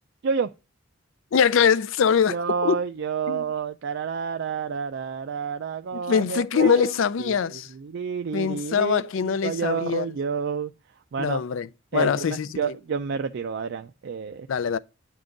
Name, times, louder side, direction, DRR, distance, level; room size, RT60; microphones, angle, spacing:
voice 1, 1.3-2.4 2.6-2.8 3.3-3.5 5.9-7.7 8.3-10.1 11.2-11.7 11.9-12.7 14.5-14.8, left 7 dB, 65° left, 0.4 m, -23 dB
voice 2, 2.3-6.9 7.2-10.7 11.1-11.4 11.9-14.5, right 6 dB, 55° right, 0.3 m, -29 dB
9.7 x 3.6 x 3.9 m
head